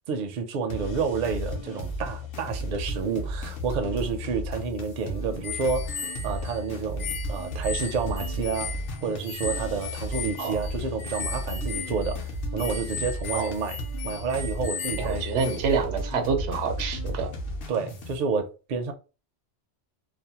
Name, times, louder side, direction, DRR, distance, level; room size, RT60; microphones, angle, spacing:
voice 1, 0.1-8.7 9.0-12.2 12.5-13.8 14.0-15.2 17.7-18.9, right 5 dB, 60° right, 0.5 m, -29 dB
sound 1, 0.7-18.2, equal, 60° left, 0.8 m, -34 dB
sound 2, 5.4-15.6, left 6 dB, 85° left, 0.9 m, -37 dB
voice 2, 15.0-17.3, right 5 dB, 90° right, 0.9 m, -27 dB
2.5 x 2.0 x 2.8 m
omnidirectional pair, 1.2 m